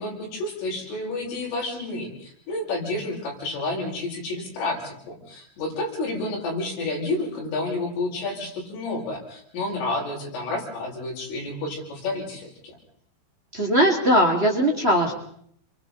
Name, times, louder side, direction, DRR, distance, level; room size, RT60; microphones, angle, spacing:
voice 1, 0.0-12.8, left 2 dB, 85° left, -2 dB, 8.3 m, -30 dB
voice 2, 13.5-15.1, equal, 25° right, 1 dB, 1.5 m, -20 dB
28.5 x 24.5 x 4.1 m, 0.65 s
omnidirectional pair, 5.6 m